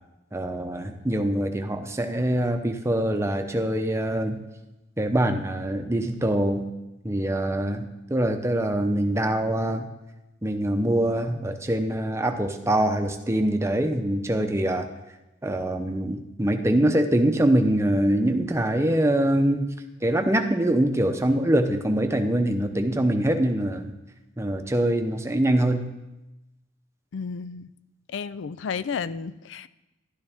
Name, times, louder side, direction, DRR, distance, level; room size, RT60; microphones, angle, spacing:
voice 1, 0.3-4.4 5.0-6.7 7.0-9.9 10.4-14.9 15.4-19.7 20.0-23.9 24.4-25.9, right 1 dB, 15° right, 6 dB, 0.7 m, -24 dB
voice 2, 27.1-27.7 28.1-29.7, left 6 dB, 75° left, 16 dB, 0.4 m, -32 dB
12.0 x 11.5 x 3.6 m, 1.0 s
head